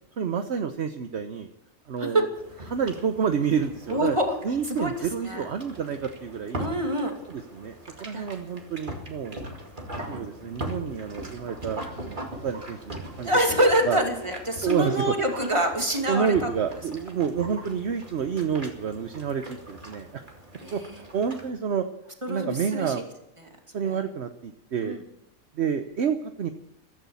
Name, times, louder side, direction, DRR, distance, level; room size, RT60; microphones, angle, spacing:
voice 1, 0.2-1.5 1.9-2.3 2.7-4.2 4.4-6.7 7.3-9.4 10.1-13.4 13.9-14.0 14.6-15.1 16.1-20.2 20.7-20.8 21.1-21.8 22.3-23.0 23.7-25.0 25.6-26.5, right 7 dB, 60° right, 7 dB, 1.1 m, -29 dB
sound 1, 2.3-21.5, right 1 dB, 40° right, 2.5 m, -41 dB
voice 2, 3.9-4.3 4.7-5.5 6.6-7.1 8.1-8.3 13.2-16.5 20.6-20.9 22.2-22.9 23.8-24.0 24.8-25.0, equal, 20° right, 3 dB, 2.6 m, -26 dB
14.5 x 13.5 x 7.1 m, 0.82 s
omnidirectional pair, 1.4 m